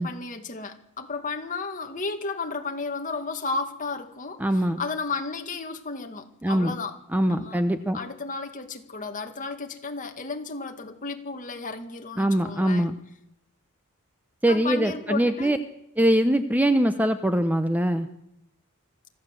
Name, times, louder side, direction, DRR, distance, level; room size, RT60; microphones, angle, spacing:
voice 1, 0.0-4.4 4.8-7.0 7.3-7.6 7.9-12.8 14.5-15.6, left 4 dB, 35° left, 4 dB, 2.1 m, -33 dB
voice 2, 4.4-4.8 6.4-6.7 7.1-8.0 12.2-13.0 14.4-15.6 16.0-18.1, right 1 dB, 5° right, 9 dB, 0.8 m, -22 dB
25.0 x 15.0 x 7.7 m, 0.81 s
head